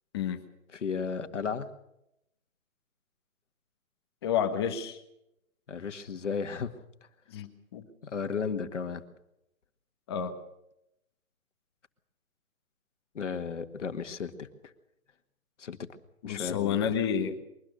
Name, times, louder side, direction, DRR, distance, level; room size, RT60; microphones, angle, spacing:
voice 1, 0.7-1.7 5.7-6.7 8.0-9.0 13.1-14.5 15.6-15.8 16.2-16.9, left 6 dB, 55° left, 8 dB, 2.0 m, -34 dB
voice 2, 4.2-5.0 7.3-7.9 10.1-10.4 16.2-17.4, left 8 dB, 20° left, 7 dB, 1.4 m, -30 dB
23.0 x 19.5 x 6.8 m, 0.82 s
hypercardioid pair, 165°, 42 cm